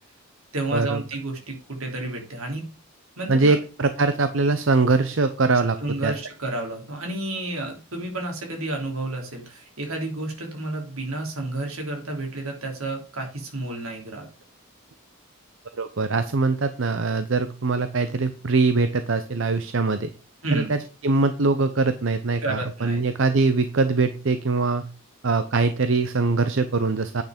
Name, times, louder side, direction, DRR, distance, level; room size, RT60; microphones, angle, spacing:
voice 1, 0.5-2.6 3.2-3.6 5.8-14.3 20.4-20.7 22.4-23.0, right 2 dB, 80° right, 2 dB, 3.3 m, -31 dB
voice 2, 3.3-5.8 6.0-6.1 15.8-20.1 20.5-24.8 25.2-27.2, right 3 dB, 60° right, 10 dB, 0.7 m, -22 dB
9.1 x 6.0 x 5.1 m, 0.34 s
head